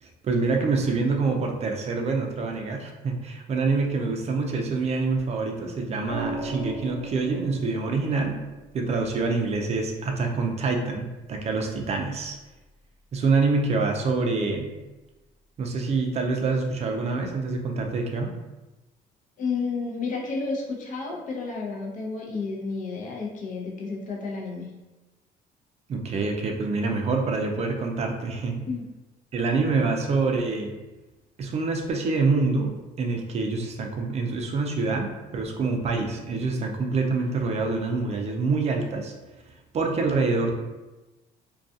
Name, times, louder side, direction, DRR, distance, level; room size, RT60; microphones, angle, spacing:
voice 1, 0.0-8.4 8.7-12.4 13.1-14.7 15.6-18.3 25.9-28.6 29.3-30.8 31.4-32.7 33.0-39.1 39.7-40.5, right 3 dB, 40° right, 2 dB, 0.4 m, -26 dB
sound 1, 6.1-10.2 11.9-12.3, right 2 dB, 75° left, 1.1 m, -38 dB
voice 2, 19.4-24.7 28.7-28.8, left 4 dB, 50° left, -1 dB, 0.6 m, -31 dB
2.3 x 2.3 x 2.6 m, 1.1 s
cardioid pair, 110°, 17 cm